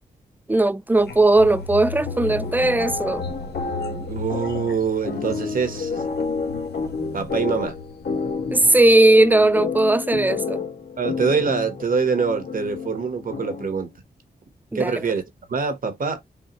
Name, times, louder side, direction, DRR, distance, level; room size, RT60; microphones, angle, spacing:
voice 1, 0.5-3.2 8.5-10.6 14.7-15.0, right 2 dB, 10° right, 0.5 m, -18 dB
sound 1, 0.9-8.8 9.2-9.4, left 4 dB, 80° left, 1.1 m, -36 dB
sound 2, 2.1-13.8, left 4 dB, 65° left, 1.9 m, -30 dB
voice 2, 4.1-6.0 7.1-7.8 11.0-13.9 14.7-15.2 15.5-16.2, right 5 dB, 55° right, 1.2 m, -24 dB
5.6 x 2.3 x 3.0 m
cardioid pair, 85°, 17 cm